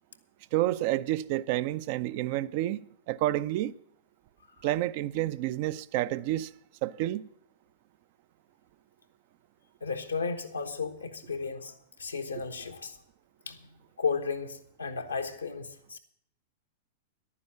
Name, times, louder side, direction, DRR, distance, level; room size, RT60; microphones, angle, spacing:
voice 1, 0.5-2.8 3.1-3.7 4.6-6.5 6.8-7.3, right 14 dB, 50° right, 0.5 m, -29 dB
voice 2, 9.8-13.0 13.5-16.0, left 5 dB, 90° left, 1.2 m, -34 dB
11.0 x 9.7 x 7.3 m
hypercardioid pair, 100°, 0 cm